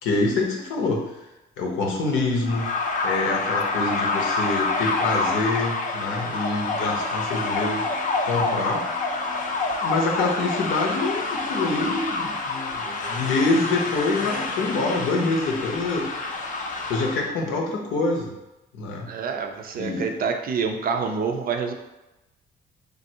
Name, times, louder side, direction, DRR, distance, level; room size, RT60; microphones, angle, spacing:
voice 1, 0.0-1.0 1.6-2.6 3.0-7.8 8.3-8.8 9.8-16.1 16.9-18.3 18.7-19.1 19.8-20.1, left 3 dB, 85° left, 0 dB, 0.7 m, -25 dB
sound 1, 2.4-17.3, left 3 dB, 40° left, 0.4 m, -27 dB
voice 2, 19.1-21.7, right 5 dB, 50° right, 4 dB, 0.4 m, -27 dB
3.2 x 2.5 x 2.7 m, 0.98 s
cardioid pair, 90°, 20 cm